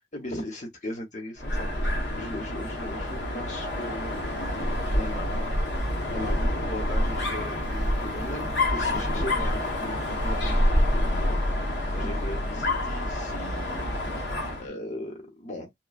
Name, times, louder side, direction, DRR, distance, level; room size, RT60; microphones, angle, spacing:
voice 1, 0.1-5.6 6.1-11.4 11.9-13.9 14.2-15.8, left 1 dB, 45° left, 0.9 m, -38 dB
Dog, 1.4-14.7, left 1 dB, 85° left, 1.0 m, -27 dB
3.0 x 2.2 x 2.4 m
head